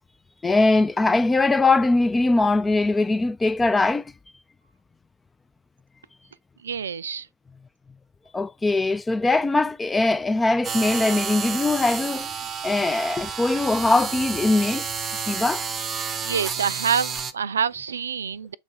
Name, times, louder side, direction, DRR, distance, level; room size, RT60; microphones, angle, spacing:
voice 1, 0.4-4.0 8.3-12.3 12.6-14.9 15.1-15.6, left 2 dB, 10° left, 0.3 m, -21 dB
voice 2, 6.6-7.3 16.2-18.5, right 7 dB, 70° right, 0.4 m, -26 dB
sound 1, 10.6-17.3, right 6 dB, 20° right, 0.7 m, -30 dB
7.3 x 4.1 x 3.3 m
figure-of-eight pair, 90°, 0 cm